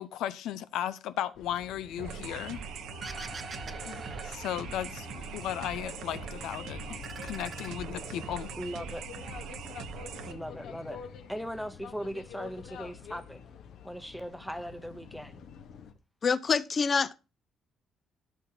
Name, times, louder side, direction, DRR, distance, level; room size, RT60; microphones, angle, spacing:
voice 1, 0.0-2.6 3.9-8.5, left 11 dB, 90° left, 0.6 m, -36 dB
sound 1, 1.3-15.9, left 7 dB, 70° left, 1.2 m, -47 dB
sound 2, 2.0-10.3, right 6 dB, 80° right, 1.0 m, -41 dB
sound 3, 3.0-5.3 5.7-6.5 6.8-8.4, right 3 dB, 30° right, 1.1 m, -45 dB
voice 2, 8.6-9.0 10.3-13.4 13.8-15.4, equal, ahead, 0.8 m, -39 dB
voice 3, 16.2-17.1, left 5 dB, 35° left, 0.6 m, -26 dB
15.5 x 6.2 x 2.8 m
cardioid pair, 130°, 0 cm